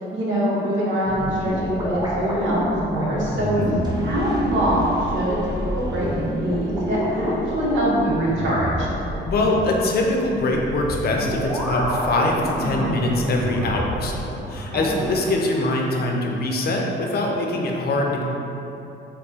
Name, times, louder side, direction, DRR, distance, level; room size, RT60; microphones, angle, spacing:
voice 1, 0.1-2.6 2.9-3.6 4.0-5.4 5.7-6.1 6.4-8.9 14.7-14.9, right 1 dB, 75° right, -5 dB, 0.9 m, -23 dB
sound 1, 1.0-15.4, equal, 20° right, 0.7 m, -28 dB
voice 2, 9.2-14.2 14.5-18.2, left 2 dB, 50° left, 0 dB, 0.6 m, -23 dB
3.6 x 2.1 x 4.0 m, 2.9 s
cardioid pair, 90°, 20 cm